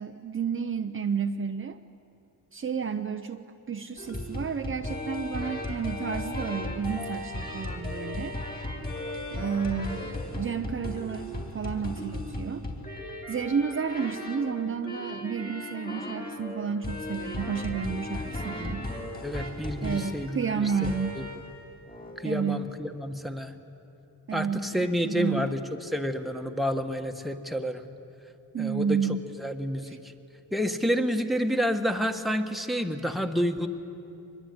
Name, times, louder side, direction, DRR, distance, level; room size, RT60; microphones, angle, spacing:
voice 1, 0.0-1.8 2.5-8.4 9.3-12.6 13.3-18.9 19.8-21.2 22.2-22.7 24.3-24.7 25.0-25.5 28.5-29.2 29.9-30.0, right 6 dB, 35° right, 6 dB, 0.7 m, -31 dB
sound 1, 4.0-21.5 21.9-22.2, left 1 dB, 25° left, 4.2 m, -36 dB
voice 2, 19.2-21.3 22.2-23.5 24.3-27.9 28.6-29.0 29.4-30.0 30.5-33.7, equal, ahead, 4 dB, 1.5 m, -29 dB
24.0 x 21.5 x 9.5 m, 2.8 s
cardioid pair, 95°, 36 cm